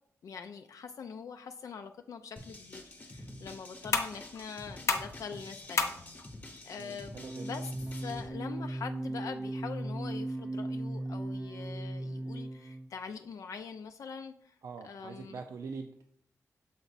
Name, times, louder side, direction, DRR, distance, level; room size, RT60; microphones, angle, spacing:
voice 1, 0.2-6.0 6.6-14.5 14.8-15.4, left 6 dB, 75° left, 6 dB, 0.4 m, -44 dB
sound 1, 2.4-9.4, left 4 dB, 60° left, 0.8 m, -38 dB
sound 2, 2.4-8.3, left 1 dB, 30° left, 0.9 m, -48 dB
voice 2, 6.8-7.5 14.6-16.0, right 4 dB, 80° right, 5 dB, 0.5 m, -43 dB
sound 3, 7.2-12.9, right 1 dB, 15° right, 0.3 m, -37 dB
7.1 x 4.4 x 4.0 m, 0.66 s
wide cardioid pair, 155°, 6 cm